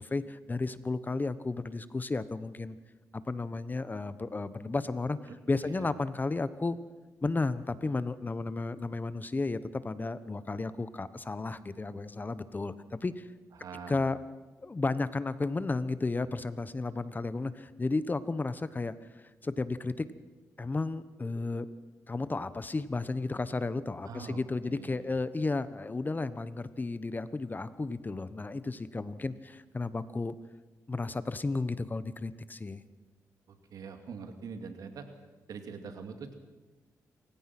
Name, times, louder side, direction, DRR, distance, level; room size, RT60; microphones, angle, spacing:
voice 1, 0.0-2.8 3.1-5.2 5.5-6.8 7.2-13.3 13.9-14.2 14.6-20.1 20.6-21.7 22.1-30.3 30.9-32.8, left 3 dB, 30° left, 14 dB, 1.1 m, -33 dB
voice 2, 13.5-14.1 24.1-25.2 33.5-35.1 35.5-36.3, right 5 dB, 75° right, 6 dB, 2.6 m, -44 dB
27.5 x 16.0 x 6.1 m, 1.2 s
cardioid pair, 70°, 6 cm